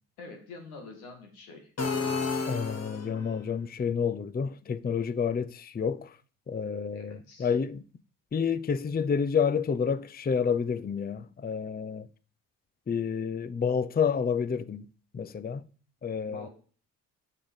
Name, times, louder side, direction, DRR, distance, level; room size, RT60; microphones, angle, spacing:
voice 1, 0.2-1.7 6.9-7.5 16.2-16.5, left 3 dB, 85° left, 2.5 m, -46 dB
sound 1, 1.8-3.4, left 4 dB, 35° left, 1.9 m, -31 dB
voice 2, 2.5-6.2 6.5-7.8 8.3-12.1 12.9-14.9 15.1-15.6 16.0-16.5, left 6 dB, 20° left, 0.7 m, -29 dB
8.5 x 6.6 x 7.3 m
hypercardioid pair, 45°, 42 cm